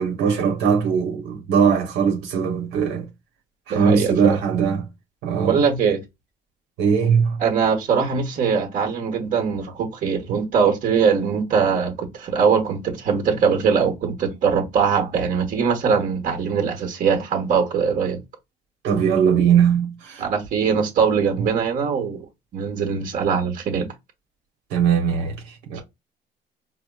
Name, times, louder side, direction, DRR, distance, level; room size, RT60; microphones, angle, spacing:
voice 1, 0.0-3.1 3.7-4.9 5.2-5.6 6.8-7.4 18.8-20.2 24.7-25.4 25.7-25.8, right 7 dB, 90° right, 1.0 m, -20 dB
voice 2, 3.7-4.4 5.4-6.0 7.4-18.2 20.2-22.3 22.5-23.9, right 6 dB, 50° right, 1.3 m, -21 dB
4.8 x 2.1 x 2.3 m
cardioid pair, 110°, 17 cm